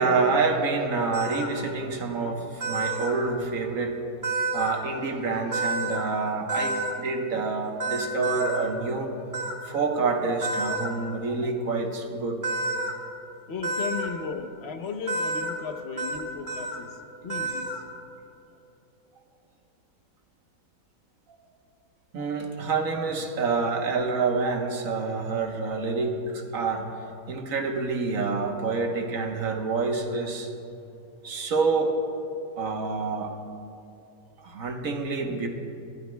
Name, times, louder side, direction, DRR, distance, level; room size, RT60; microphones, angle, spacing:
voice 1, 0.0-4.0 4.5-9.1 9.6-12.4 22.1-26.8 27.3-30.5 31.2-32.0 32.6-33.3 34.4-35.5, right 4 dB, 60° right, 3 dB, 1.4 m, -27 dB
sound 1, 1.1-1.5 2.6-3.1 4.2-4.8 5.5-6.0 6.5-6.9 7.8-8.6 9.3-9.5 10.4-10.9 12.4-12.9 13.6-14.1 15.1-15.5 16.0-16.2 16.5-16.8 17.3-17.8, right 2 dB, 10° right, 1.3 m, -29 dB
voice 2, 13.5-17.8, left 5 dB, 50° left, 6 dB, 0.9 m, -36 dB
22.0 x 12.5 x 2.2 m, 2.7 s
omnidirectional pair, 1.7 m